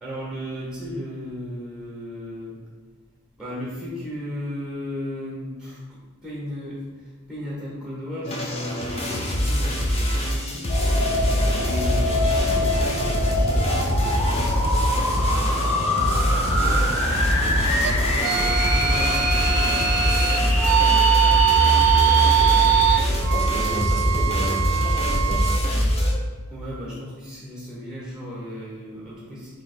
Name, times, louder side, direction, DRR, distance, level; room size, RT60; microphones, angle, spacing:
voice 1, 0.0-2.6 3.4-10.7 11.5-14.8 15.5-20.7 26.5-29.6, equal, 5° right, -6 dB, 0.9 m, -35 dB
sound 1, 8.3-26.1, equal, 30° left, 0.5 m, -23 dB
sound 2, 10.7-23.0, left 1 dB, 80° left, 0.8 m, -25 dB
sound 3, 17.8-25.6, right 12 dB, 90° right, 0.3 m, -22 dB
voice 2, 22.2-22.8 23.3-25.5, right 1 dB, 35° right, 0 dB, 0.5 m, -33 dB
2.9 x 2.8 x 4.2 m, 1.4 s
head